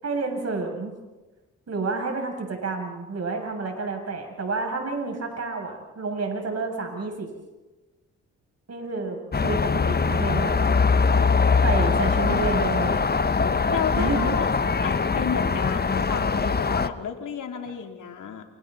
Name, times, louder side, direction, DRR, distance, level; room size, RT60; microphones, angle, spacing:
voice 1, 0.0-0.9 1.7-7.3 8.7-10.7 11.6-13.1 14.0-14.3, right 3 dB, 50° right, 3 dB, 7.4 m, -29 dB
sound 1, 9.3-16.9, left 4 dB, 30° left, 1.1 m, -22 dB
voice 2, 13.7-14.5 14.8-18.4, left 7 dB, 65° left, 3 dB, 3.5 m, -32 dB
29.0 x 28.0 x 4.2 m, 1.2 s
supercardioid pair, 50°, 34 cm